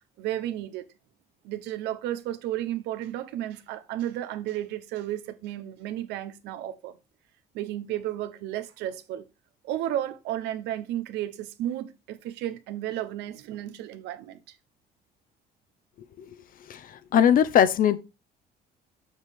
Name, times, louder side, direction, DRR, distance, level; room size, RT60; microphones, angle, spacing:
voice 1, 0.2-0.8 1.4-7.0 7.5-9.2 9.6-14.4, right 12 dB, 85° right, 0.9 m, -33 dB
voice 2, 16.7-18.0, left 9 dB, 55° left, 0.8 m, -20 dB
7.1 x 6.3 x 3.5 m
cardioid pair, 110°, 17 cm